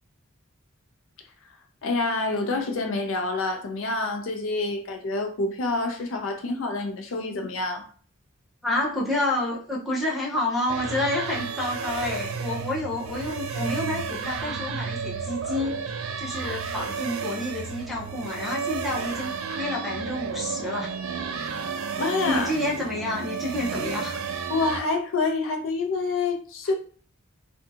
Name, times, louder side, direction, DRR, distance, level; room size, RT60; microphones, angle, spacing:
voice 1, 1.8-7.9 22.0-22.5 24.5-26.7, left 3 dB, 70° left, 0.5 m, -27 dB
voice 2, 8.6-15.8 16.2-20.9 22.2-24.2, left 1 dB, ahead, 0.7 m, -29 dB
sound 1, 10.7-24.8, right 5 dB, 80° right, 0.4 m, -32 dB
2.6 x 2.2 x 2.7 m
head